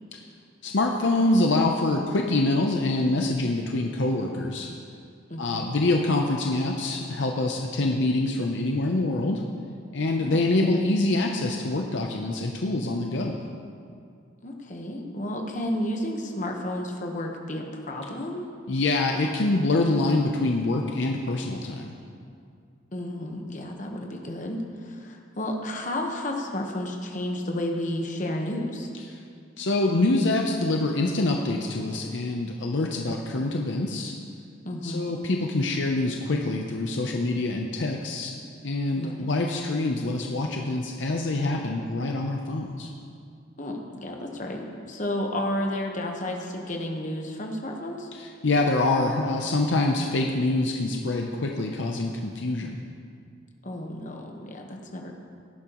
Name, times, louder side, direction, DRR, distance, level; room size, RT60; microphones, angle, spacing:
voice 1, 0.6-4.7 5.4-9.4 9.9-13.4 18.7-21.9 29.6-34.1 34.8-38.3 38.6-42.9 48.1-52.8, left 2 dB, 65° left, 2 dB, 0.7 m, -25 dB
voice 2, 5.3-5.6 10.2-10.4 14.4-18.5 22.9-28.9 34.6-35.1 38.9-39.3 43.6-48.1 53.6-55.2, left 1 dB, 40° left, 1 dB, 1.2 m, -32 dB
17.0 x 10.5 x 3.0 m, 2.3 s
head